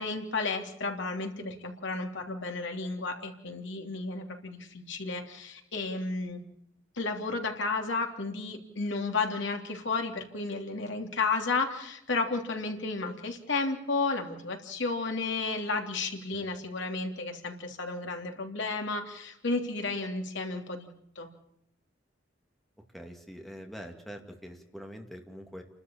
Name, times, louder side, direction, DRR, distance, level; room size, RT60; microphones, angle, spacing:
voice 1, 0.0-6.4 7.0-20.9 21.1-21.3, left 3 dB, 65° left, 3 dB, 3.2 m, -32 dB
voice 2, 22.9-25.6, equal, ahead, 3 dB, 2.4 m, -44 dB
29.0 x 13.0 x 8.7 m, 0.74 s
head